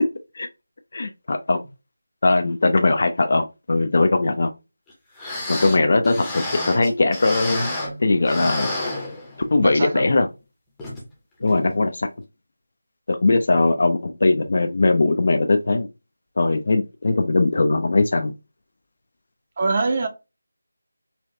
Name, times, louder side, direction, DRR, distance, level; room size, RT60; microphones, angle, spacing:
voice 1, 0.9-1.6 2.2-4.5 5.5-7.7 8.0-8.7 9.5-10.3 11.4-12.1 13.1-15.9 16.4-18.3, left 2 dB, 50° left, 0.4 m, -20 dB
sound 1, 4.9-5.0 5.2-8.0 8.3-9.6 10.0-10.1 10.8-11.0 11.5-11.6, left 2 dB, 5° left, 0.8 m, -30 dB
voice 2, 9.6-10.1 19.6-20.1, right 3 dB, 35° right, 0.8 m, -23 dB
4.1 x 2.4 x 3.1 m
figure-of-eight pair, 165°, 0 cm